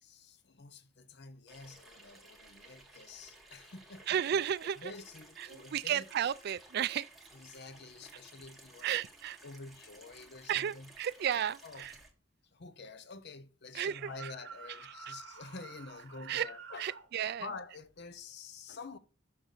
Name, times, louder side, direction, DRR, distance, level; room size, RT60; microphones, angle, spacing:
voice 1, 0.0-4.1 4.8-6.1 7.3-9.0 9.4-10.9 11.6-11.9 12.5-16.9 17.4-19.0, left 4 dB, 55° left, 0.7 m, -48 dB
Water tap faucet / Sink (filling or washing), 1.5-12.1, right 2 dB, ahead, 1.2 m, -57 dB
voice 2, 4.1-4.9 5.4-7.1 8.8-9.4 10.5-12.0 13.7-14.3 14.8-15.1 16.3-16.5 16.8-17.5, right 9 dB, 55° right, 0.3 m, -33 dB
sound 1, 13.7-17.1, right 5 dB, 75° right, 0.9 m, -50 dB
6.4 x 5.7 x 3.9 m
head